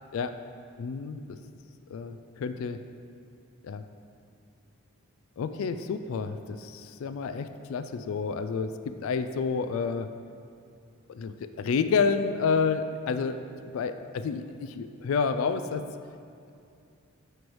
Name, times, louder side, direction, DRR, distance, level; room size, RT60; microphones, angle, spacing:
voice 1, 0.8-1.4 1.9-2.8 3.6-3.8 5.4-10.1 11.1-13.4 13.7-15.8, left 5 dB, 70° left, 9 dB, 0.3 m, -29 dB
9.2 x 3.2 x 4.6 m, 2.4 s
head